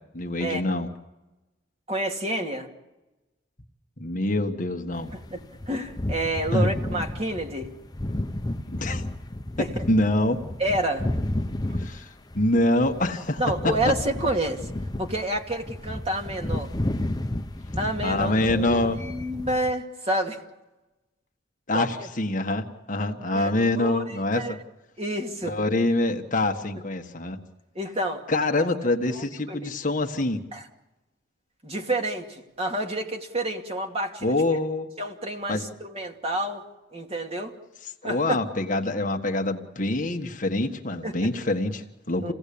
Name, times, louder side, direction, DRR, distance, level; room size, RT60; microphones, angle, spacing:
voice 1, 0.1-0.9 4.0-5.1 6.5-6.7 8.7-9.0 9.6-10.4 11.8-12.1 12.3-13.7 18.0-19.0 21.7-24.6 25.4-27.4 28.3-30.4 34.2-34.9 35.5-35.6 38.0-42.3, left 2 dB, 40° left, 1.6 m, -25 dB
voice 2, 1.9-2.7 5.1-7.7 9.6-9.8 10.6-11.1 13.4-14.7 15.0-16.7 17.7-20.4 21.7-22.1 23.3-24.0 24.3-24.5 25.0-25.6 27.7-28.3 28.6-28.7 29.1-29.7 30.5-30.7 31.6-34.3 35.0-36.7 36.9-37.6 38.0-38.4 41.0-41.3 42.2-42.3, right 1 dB, 30° right, 2.5 m, -29 dB
sound 1, 4.9-19.7, left 1 dB, 20° left, 0.8 m, -32 dB
28.5 x 18.0 x 8.6 m
head